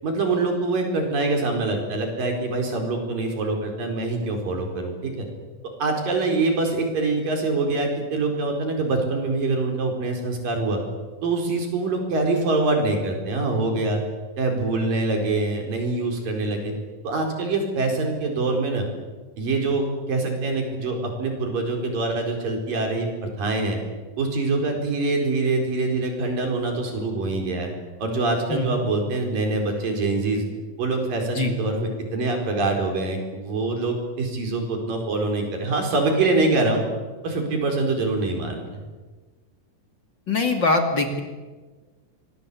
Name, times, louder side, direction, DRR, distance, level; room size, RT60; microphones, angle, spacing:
voice 1, 0.0-5.3 5.8-10.8 11.2-14.0 14.4-16.7 17.0-18.9 19.4-23.8 24.2-27.7 28.0-30.4 30.8-36.8 37.2-38.8, right 3 dB, 85° right, 3 dB, 6.2 m, -24 dB
voice 2, 40.3-41.2, left 3 dB, 35° left, 4 dB, 2.8 m, -22 dB
25.5 x 21.5 x 8.5 m, 1.3 s
omnidirectional pair, 3.9 m